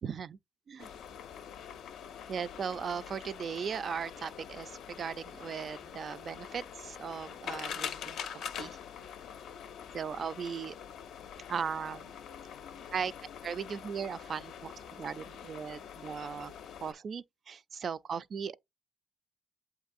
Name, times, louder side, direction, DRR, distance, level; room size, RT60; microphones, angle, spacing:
voice 1, 0.0-0.4 0.7-0.9 2.3-8.8 9.9-10.8 11.5-12.1 12.9-13.1 13.4-16.5 16.8-18.6, right 6 dB, 50° right, 0.3 m, -38 dB
sound 1, 0.8-16.9, left 8 dB, 75° left, 0.4 m, -45 dB
7.8 x 2.6 x 2.5 m
cardioid pair, 90°, 0 cm